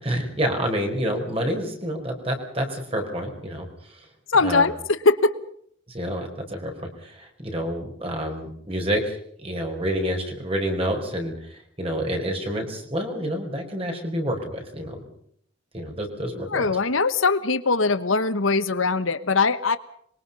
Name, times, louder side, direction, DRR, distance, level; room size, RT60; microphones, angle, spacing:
voice 1, 0.0-4.1 4.4-4.7 5.9-6.7 7.0-15.0 15.7-16.8, equal, 30° right, 3 dB, 4.9 m, -28 dB
voice 2, 4.3-5.3 16.5-19.8, left 4 dB, 85° left, 13 dB, 1.3 m, -21 dB
26.5 x 23.0 x 5.5 m, 0.65 s
head